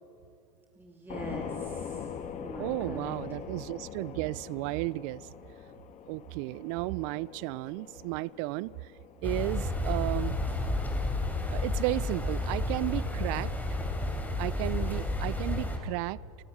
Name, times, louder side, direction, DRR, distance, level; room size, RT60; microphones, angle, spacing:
voice 1, 0.8-2.1 2.4-3.1, right 1 dB, 10° right, 2.6 m, -42 dB
sound 1, 1.1-13.1, left 8 dB, 40° left, 1.9 m, -44 dB
voice 2, 2.6-5.2 6.1-8.7 9.2-10.3 11.5-13.8 14.4-16.2, right 21 dB, 60° right, 0.4 m, -33 dB
sound 2, 9.2-15.8, left 2 dB, 10° left, 3.4 m, -31 dB
29.5 x 12.5 x 8.7 m
hypercardioid pair, 95°, 20 cm